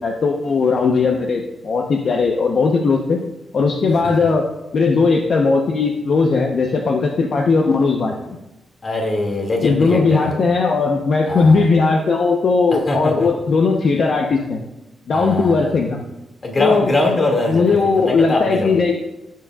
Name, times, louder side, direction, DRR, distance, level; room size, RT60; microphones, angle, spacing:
voice 1, 0.0-3.2 3.5-4.4 4.7-8.4 9.6-14.6 15.1-16.0 16.6-16.9 17.5-18.9, left 4 dB, 50° left, 1 dB, 0.9 m, -18 dB
voice 2, 8.8-10.4 11.3-11.7 12.9-13.3 15.1-15.7 16.4-18.7, left 2 dB, 30° left, 0 dB, 2.2 m, -22 dB
16.5 x 7.6 x 2.4 m, 0.95 s
wide cardioid pair, 155°, 0 cm